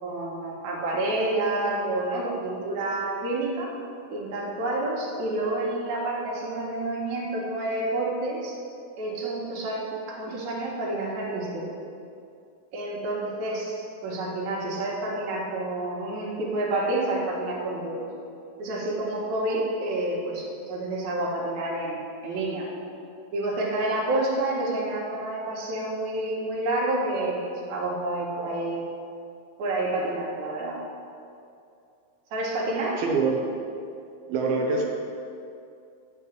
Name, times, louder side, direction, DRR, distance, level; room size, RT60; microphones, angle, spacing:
voice 1, 0.0-3.7 4.1-8.6 9.0-11.7 12.7-18.0 18.6-22.7 23.3-28.8 29.6-30.8 32.3-33.0, right 2 dB, 60° right, -4 dB, 2.7 m, -29 dB
voice 2, 33.0-33.6 34.3-34.8, right 4 dB, 85° right, -1 dB, 2.8 m, -25 dB
11.0 x 4.5 x 7.4 m, 2.5 s
omnidirectional pair, 4.3 m